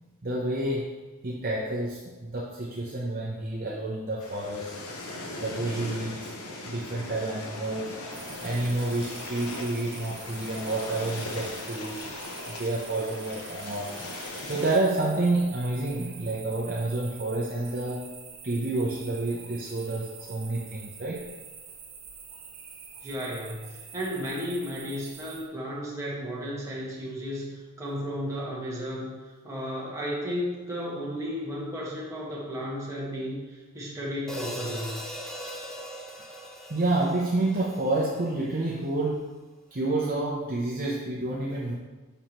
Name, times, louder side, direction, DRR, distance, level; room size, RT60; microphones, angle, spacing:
voice 1, 0.2-1.0 1.2-5.1 5.4-6.3 6.6-8.0 8.4-12.1 12.5-14.0 14.5-18.0 18.4-21.2 36.7-39.3 39.7-41.7, right 2 dB, 40° right, -4 dB, 0.7 m, -29 dB
sound 1, 4.2-14.8, left 2 dB, 85° left, 1.0 m, -39 dB
sound 2, 8.1-25.5, right 6 dB, 70° right, 1.1 m, -46 dB
voice 2, 23.0-29.1 29.4-35.0, equal, 15° right, -6 dB, 1.5 m, -34 dB
Hi-hat, 34.3-38.6, equal, 5° left, 0.5 m, -40 dB
7.0 x 5.5 x 3.0 m, 1.2 s
head